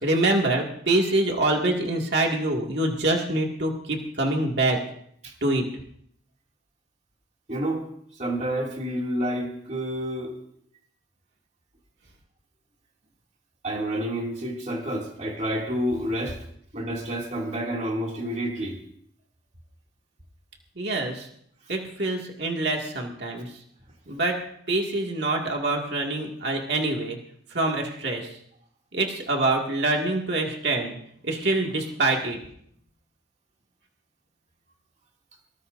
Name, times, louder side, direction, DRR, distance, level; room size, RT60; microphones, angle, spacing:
voice 1, 0.0-4.8 5.4-5.7 20.8-21.3 21.7-23.4 24.1-24.4 24.7-27.2 27.5-28.3 28.9-31.0 31.2-32.4, right 2 dB, 60° right, 0 dB, 2.2 m, -25 dB
voice 2, 7.5-7.8 8.1-10.4 13.6-16.4 16.7-18.8, equal, 35° right, 0 dB, 2.6 m, -29 dB
23.0 x 19.0 x 2.7 m, 0.68 s
head